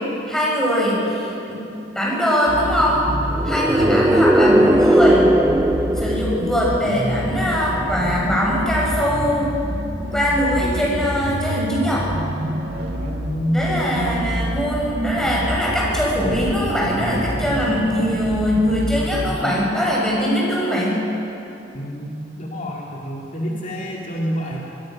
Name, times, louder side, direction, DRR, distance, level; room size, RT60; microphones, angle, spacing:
voice 1, 0.3-1.6 2.0-3.1 3.4-5.3 6.0-9.5 10.1-12.1 13.5-21.0, equal, 5° left, -5 dB, 7.1 m, -21 dB
sound 1, 2.5-19.3, equal, 60° right, 2.4 m, -27 dB
sound 2, 3.3-7.1, right 1 dB, 10° right, 0.6 m, -17 dB
voice 2, 13.0-13.6 21.7-24.6, equal, 45° left, -3 dB, 2.5 m, -27 dB
27.0 x 20.5 x 6.5 m, 2.8 s
head